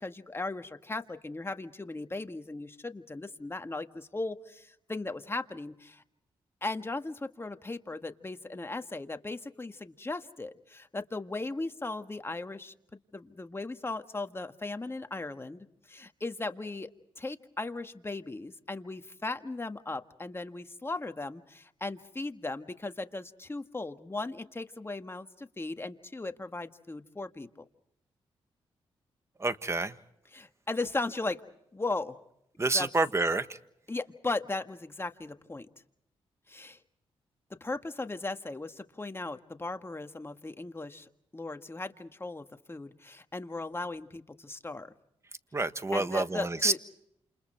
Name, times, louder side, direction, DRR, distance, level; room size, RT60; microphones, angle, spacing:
voice 1, 0.0-6.0 6.6-12.7 13.1-16.9 17.2-27.6 30.3-31.4 31.7-32.2 32.7-32.9 33.9-35.7 36.5-36.8 37.6-44.9 45.9-46.8, left 2 dB, 25° left, 7 dB, 1.7 m, -37 dB
voice 2, 29.4-29.9 32.6-33.6 45.5-46.8, right 2 dB, 25° right, 12 dB, 1.4 m, -28 dB
29.5 x 28.5 x 4.5 m, 0.77 s
cardioid pair, 65°, 11 cm